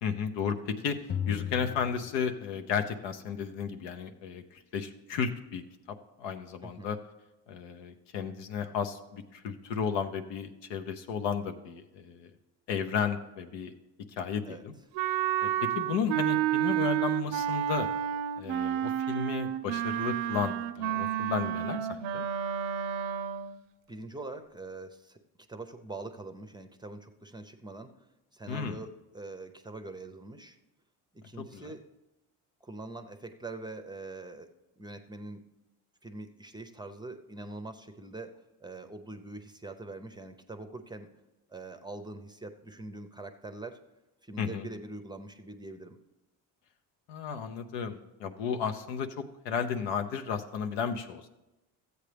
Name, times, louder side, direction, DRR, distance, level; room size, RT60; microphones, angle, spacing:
voice 1, 0.0-1.0 1.3-5.6 5.9-7.0 7.5-12.3 12.7-13.7 14.2-14.7 15.4-17.9 18.4-22.3 28.5-28.8 31.4-31.7 44.4-44.7 47.1-51.2, left 7 dB, 80° left, 7 dB, 0.8 m, -33 dB
sound 1, 1.1-2.9, left 9 dB, 25° left, 0.4 m, -36 dB
Wind instrument woodwind instrument, 15.0-23.6, right 11 dB, 80° right, 0.6 m, -30 dB
voice 2, 23.9-25.2 25.5-28.0 28.3-30.6 31.1-31.9 32.6-34.5 34.8-35.4 36.0-41.1 41.5-43.8 44.2-46.0, right 2 dB, 10° right, 7 dB, 0.6 m, -43 dB
13.5 x 8.1 x 3.4 m, 1.0 s
supercardioid pair, 80°, 42 cm